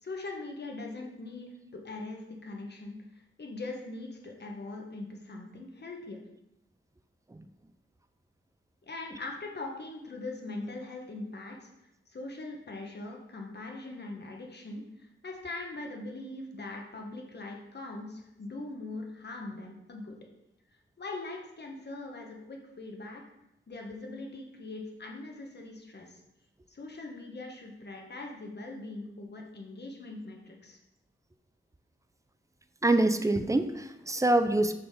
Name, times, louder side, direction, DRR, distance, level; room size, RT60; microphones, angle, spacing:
voice 1, 0.0-6.2 8.8-11.7 12.1-20.2 21.0-23.2 23.7-26.2 26.7-30.8, left 2 dB, 50° left, 1 dB, 1.2 m, -41 dB
voice 2, 32.8-34.7, right 2 dB, 15° right, 9 dB, 0.4 m, -25 dB
5.5 x 5.4 x 4.3 m, 0.88 s
wide cardioid pair, 90°, 21 cm